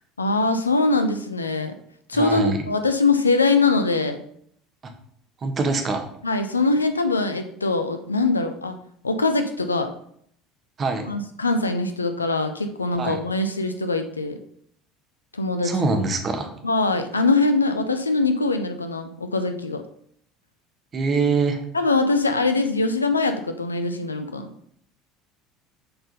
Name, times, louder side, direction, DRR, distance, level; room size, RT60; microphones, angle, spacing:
voice 1, 0.2-1.7 2.1-4.2 6.2-8.8 9.0-9.9 11.1-14.4 15.3-15.7 16.6-19.8 21.7-24.5, left 3 dB, 90° left, 7 dB, 0.6 m, -22 dB
voice 2, 2.1-2.6 4.8-4.9 5.4-6.0 10.8-11.1 13.0-13.2 15.6-16.5 20.9-21.6, right 3 dB, 35° right, 5 dB, 1.5 m, -24 dB
6.7 x 4.4 x 5.4 m, 0.66 s
figure-of-eight pair, 70°, 0 cm